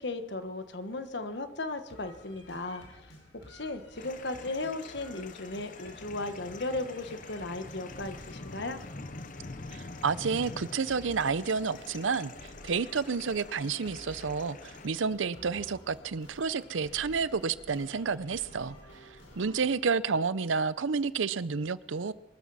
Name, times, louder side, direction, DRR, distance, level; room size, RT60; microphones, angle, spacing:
voice 1, 0.0-3.0 3.5-8.8, left 2 dB, 65° left, 1.4 m, -36 dB
sound 1, 1.9-19.8, equal, 85° left, 5.3 m, -52 dB
sound 2, 4.0-14.9, left 3 dB, 40° left, 0.8 m, -46 dB
voice 2, 9.7-22.1, right 5 dB, 85° right, 0.6 m, -30 dB
24.0 x 13.5 x 4.2 m
head